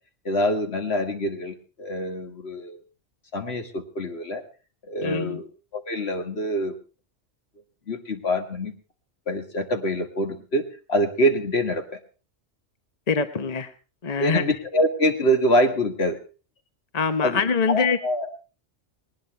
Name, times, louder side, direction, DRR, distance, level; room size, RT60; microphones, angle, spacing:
voice 1, 0.3-2.8 3.3-4.4 4.9-5.5 5.7-6.8 7.9-8.7 9.3-12.0 14.2-16.2 17.2-17.4 17.7-18.3, equal, 60° left, 6 dB, 2.1 m, -25 dB
voice 2, 5.0-5.4 13.1-13.7 14.0-14.4 16.9-18.0, left 5 dB, 35° left, 10 dB, 1.0 m, -24 dB
19.5 x 19.5 x 3.3 m, 0.33 s
omnidirectional pair, 1.2 m